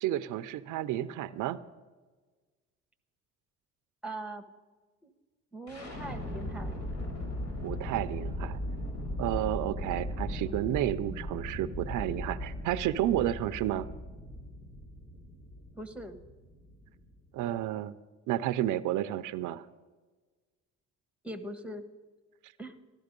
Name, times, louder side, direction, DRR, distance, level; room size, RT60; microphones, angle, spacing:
voice 1, 0.0-1.6 7.6-8.6 9.2-13.9 17.3-17.9 18.3-19.6, right 13 dB, 90° right, 14 dB, 0.6 m, -31 dB
voice 2, 4.0-4.4 5.0-5.1 5.5-6.8 15.7-16.2 21.2-21.8 22.6-22.7, right 1 dB, 5° right, 9 dB, 1.2 m, -41 dB
sound 1, 5.7-17.5, left 1 dB, 65° left, 4.8 m, -38 dB
14.5 x 12.5 x 5.2 m, 1.3 s
cardioid pair, 90°, 30 cm